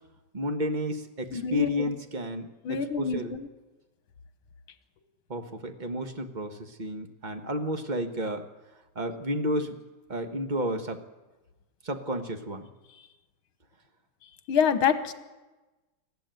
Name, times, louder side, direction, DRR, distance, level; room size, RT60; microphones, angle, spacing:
voice 1, 0.3-3.3 5.3-8.5 8.9-9.8 10.1-11.0 11.8-12.7, equal, 25° right, 6 dB, 1.2 m, -31 dB
voice 2, 1.3-1.9 2.6-3.5 14.5-15.1, left 7 dB, 80° left, 10 dB, 2.0 m, -26 dB
20.0 x 14.0 x 9.1 m, 1.2 s
omnidirectional pair, 2.3 m